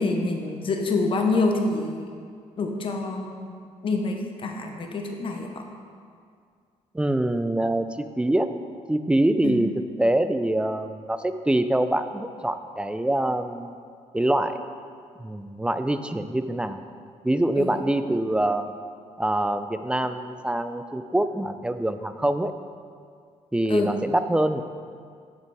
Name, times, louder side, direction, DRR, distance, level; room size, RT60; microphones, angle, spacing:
voice 1, 0.0-2.1 2.6-5.6 9.4-9.6 17.5-17.7 23.7-23.9, left 3 dB, 45° left, 3 dB, 0.8 m, -27 dB
voice 2, 6.9-8.5 8.9-9.7 10.0-13.7 14.1-14.6 15.2-16.8 17.2-18.7 19.2-22.5 23.5-24.6, right 1 dB, 10° right, 9 dB, 0.3 m, -24 dB
7.6 x 6.0 x 4.7 m, 2.2 s
cardioid pair, 100°, 13 cm